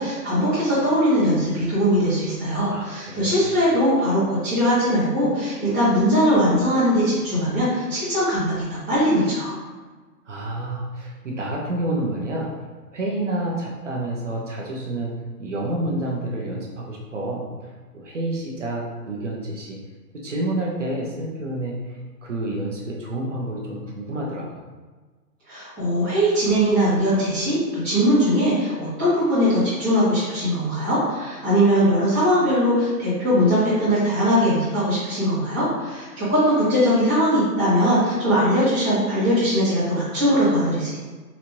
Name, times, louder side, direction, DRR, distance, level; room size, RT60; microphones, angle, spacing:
voice 1, 0.0-9.5 25.5-41.0, equal, 5° left, -17 dB, 0.7 m, -20 dB
voice 2, 2.7-3.3 10.3-12.5 12.9-19.8 20.1-21.8 22.2-24.6, right 1 dB, 50° right, -2 dB, 0.7 m, -29 dB
4.2 x 2.6 x 3.0 m, 1.3 s
hypercardioid pair, 170°, 48 cm